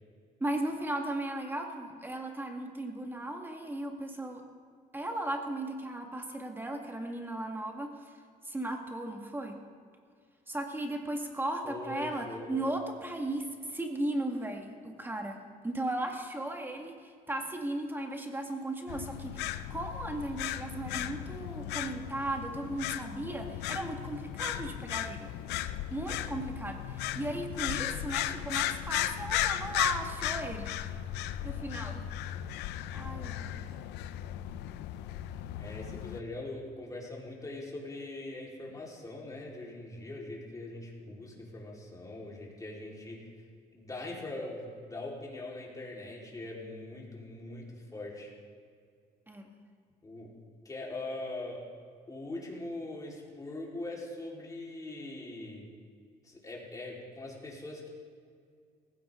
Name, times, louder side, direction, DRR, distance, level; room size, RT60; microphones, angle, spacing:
voice 1, 0.4-4.4 4.9-8.1 8.4-9.6 10.5-25.3 25.9-30.8 31.4-32.0 32.9-33.7 49.3-49.6, right 1 dB, 10° right, 3 dB, 1.9 m, -36 dB
voice 2, 11.6-12.6 35.6-43.3 43.7-48.3 50.0-50.3 50.6-51.6 52.1-55.7 56.2-57.9, left 2 dB, 20° left, -3 dB, 4.2 m, -42 dB
sound 1, 18.9-36.2, left 12 dB, 90° left, 0.6 m, -36 dB
19.0 x 16.0 x 3.8 m, 2.2 s
cardioid pair, 110°, 17 cm